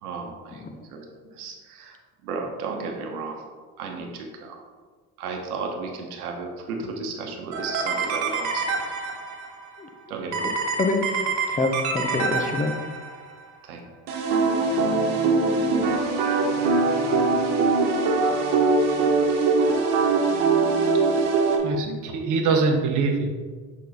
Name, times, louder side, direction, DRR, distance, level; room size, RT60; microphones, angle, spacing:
voice 1, 0.0-0.6 0.9-2.0 2.2-3.4 3.8-4.6 5.2-8.6 10.1-10.6 12.1-12.2 13.6-13.8, right 4 dB, 85° right, 3 dB, 1.0 m, -34 dB
sound 1, 7.5-9.5 10.3-13.1 14.1-21.6, right 3 dB, 65° right, 1.2 m, -23 dB
voice 2, 10.8-12.7, left 3 dB, 20° left, 6 dB, 0.7 m, -26 dB
voice 3, 21.6-23.3, right 4 dB, 45° right, 2 dB, 0.9 m, -23 dB
6.4 x 3.7 x 4.0 m, 1.5 s
hypercardioid pair, 70°, 44 cm